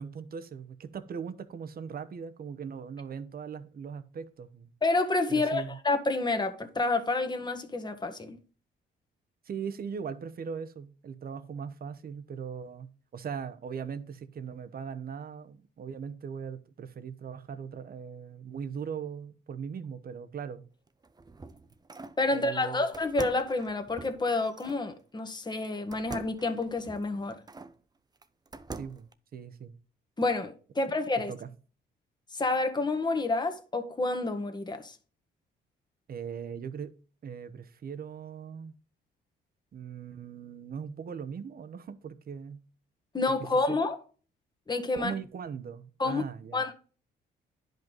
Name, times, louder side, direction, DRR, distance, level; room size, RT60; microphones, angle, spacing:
voice 1, 0.0-4.7 5.3-5.7 9.4-20.6 22.3-22.8 28.8-29.7 31.3-31.5 36.1-36.9 37.2-38.7 39.7-42.6 43.7-43.8 44.9-46.6, right 6 dB, 50° right, 1.1 m, -39 dB
voice 2, 4.8-8.4 22.2-27.4 30.2-31.3 32.3-35.0 43.1-44.0 44.7-45.1 46.0-46.2 46.5-46.7, left 3 dB, 20° left, 1.5 m, -29 dB
sound 1, 20.9-22.2 22.9-24.8 25.9-27.7 28.2-29.1, right 3 dB, 20° right, 0.7 m, -44 dB
10.5 x 5.4 x 4.0 m
cardioid pair, 90°, 20 cm